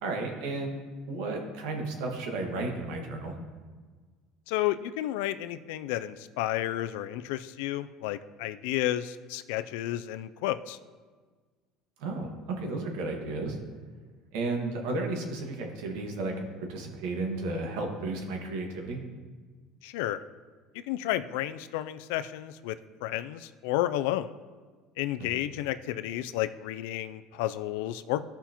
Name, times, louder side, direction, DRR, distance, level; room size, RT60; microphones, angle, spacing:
voice 1, 0.0-3.3 12.0-13.6 14.3-19.0 25.2-25.4, right 2 dB, 80° right, 2 dB, 1.6 m, -33 dB
voice 2, 4.5-10.8 19.8-20.2 20.7-22.8 23.0-24.3 25.0-28.2, left 14 dB, 85° left, 12 dB, 0.4 m, -31 dB
14.5 x 5.7 x 2.9 m, 1.5 s
supercardioid pair, 120°, 0 cm